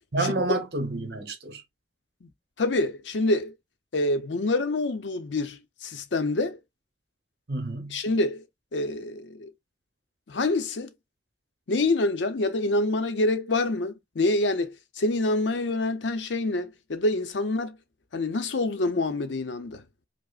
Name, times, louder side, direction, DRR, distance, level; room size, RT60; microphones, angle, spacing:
voice 1, 0.1-1.6 7.5-8.0, right 2 dB, 60° right, 0.9 m, -29 dB
voice 2, 2.6-3.5 3.9-6.6 7.9-8.4 8.7-9.5 10.3-10.9 11.7-17.8 18.1-19.8, left 2 dB, 90° left, 0.6 m, -26 dB
4.8 x 2.0 x 2.4 m
head